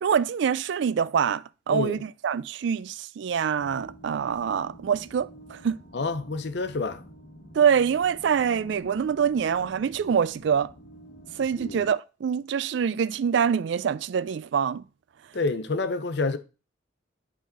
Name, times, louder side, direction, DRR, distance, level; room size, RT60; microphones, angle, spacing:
voice 1, 0.0-5.8 7.5-10.7 11.4-14.8, right 7 dB, 65° right, 0.3 m, -25 dB
voice 2, 1.7-2.0 5.9-7.0 11.6-11.9 15.3-16.4, left 3 dB, 55° left, 0.6 m, -28 dB
sound 1, 3.5-11.9, right 1 dB, 75° left, 1.3 m, -49 dB
8.3 x 4.3 x 3.9 m
head